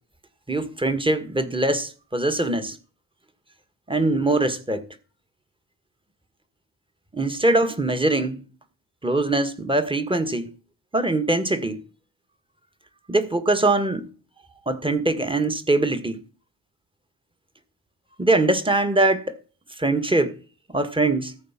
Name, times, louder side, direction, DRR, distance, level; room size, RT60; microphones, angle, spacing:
voice 1, 0.5-2.8 3.9-4.8 7.1-8.4 9.0-10.5 10.9-11.8 13.1-14.1 14.7-16.2 18.2-19.4 19.8-20.4 20.7-21.4, right 2 dB, 10° right, 1.8 m, -22 dB
14.0 x 4.8 x 7.5 m
cardioid pair, 95°, 42 cm